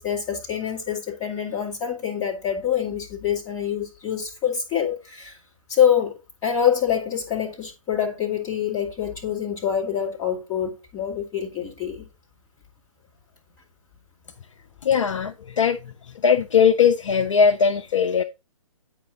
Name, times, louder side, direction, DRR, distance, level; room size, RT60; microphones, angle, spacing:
voice 1, 0.0-5.4 5.7-12.1, left 9 dB, 20° left, 2.2 m, -25 dB
voice 2, 14.8-15.9 16.2-18.2, left 6 dB, 60° left, 0.5 m, -19 dB
8.9 x 5.0 x 3.9 m
figure-of-eight pair, 130°, 18 cm